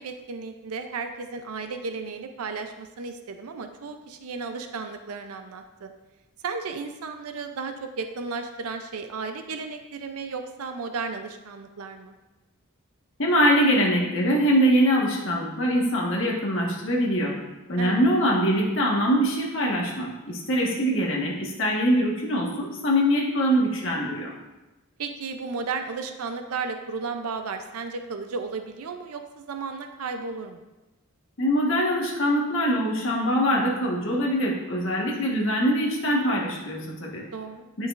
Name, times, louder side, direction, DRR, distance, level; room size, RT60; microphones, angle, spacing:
voice 1, 0.0-5.9 6.4-12.2 17.8-18.0 25.0-30.6 37.3-37.7, right 4 dB, 80° right, 6 dB, 0.5 m, -34 dB
voice 2, 13.2-17.3 17.7-24.3 31.4-37.2 37.8-37.9, equal, 55° left, -2 dB, 1.4 m, -23 dB
9.5 x 6.2 x 2.5 m, 1.1 s
head